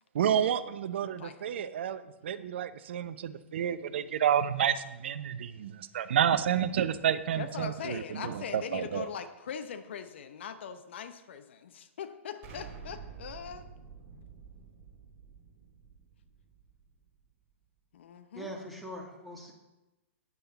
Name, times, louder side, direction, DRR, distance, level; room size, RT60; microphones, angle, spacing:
voice 1, 0.1-9.0, right 9 dB, 55° right, 13 dB, 0.7 m, -30 dB
voice 2, 1.2-1.6 7.4-13.6 14.1-14.2 17.9-18.5, left 7 dB, 60° left, 9 dB, 0.9 m, -41 dB
Explosion, 12.4-17.3, right 6 dB, 35° right, 2.8 m, -49 dB
voice 3, 18.3-19.5, equal, ahead, -1 dB, 2.3 m, -42 dB
13.5 x 9.8 x 4.1 m, 1.0 s
figure-of-eight pair, 110°, 7 cm